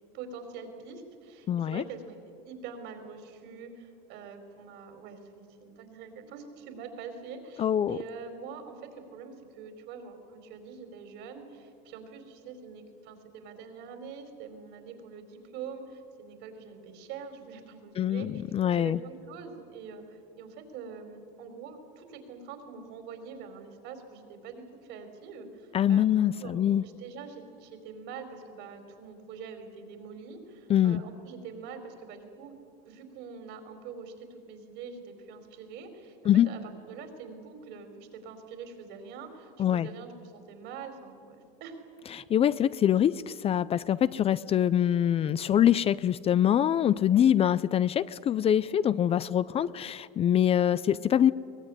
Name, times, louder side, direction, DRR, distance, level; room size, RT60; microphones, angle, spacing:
voice 1, 0.1-2.2 2.4-18.4 18.7-32.5 32.8-41.8, right 5 dB, 65° right, 7 dB, 4.5 m, -44 dB
voice 2, 1.5-1.8 7.6-8.0 18.0-19.0 25.7-26.8 30.7-31.0 36.3-36.5 39.6-39.9 42.1-51.3, left 10 dB, 30° left, 17 dB, 0.5 m, -24 dB
23.0 x 19.0 x 9.9 m, 2.4 s
supercardioid pair, 130°, 20 cm